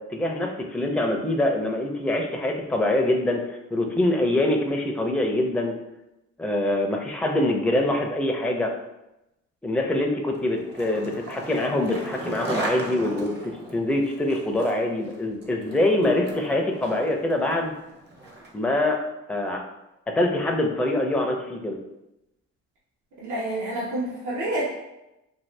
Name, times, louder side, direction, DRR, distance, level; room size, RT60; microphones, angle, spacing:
voice 1, 0.0-5.7 6.4-8.7 9.6-17.7 18.5-19.0 19.3-19.6 20.1-21.8, left 1 dB, 5° left, 2 dB, 0.4 m, -24 dB
Skateboard, 10.3-18.7, right 2 dB, 35° right, 0.7 m, -37 dB
voice 2, 23.2-24.7, right 1 dB, 70° right, -6 dB, 0.9 m, -28 dB
2.6 x 2.5 x 3.2 m, 0.92 s
cardioid pair, 90°, 30 cm